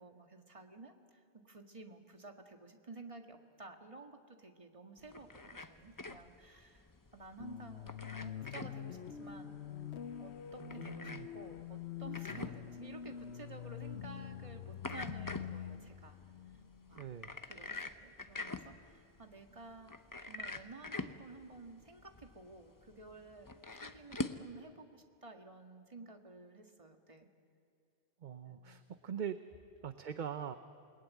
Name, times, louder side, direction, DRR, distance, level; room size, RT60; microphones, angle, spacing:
voice 1, 0.0-9.6 10.2-16.2 16.9-17.0 17.4-20.0 20.3-27.3 28.5-28.8, right 3 dB, 30° right, 5 dB, 1.7 m, -53 dB
sound 1, 5.0-24.5, left 2 dB, 20° left, 0.7 m, -46 dB
sound 2, 7.4-17.3, left 9 dB, 85° left, 1.1 m, -46 dB
voice 2, 10.6-11.3 17.0-17.3 28.2-29.4 29.8-30.6, right 8 dB, 50° right, 10 dB, 0.8 m, -42 dB
28.5 x 20.0 x 9.3 m, 2.4 s
omnidirectional pair, 1.1 m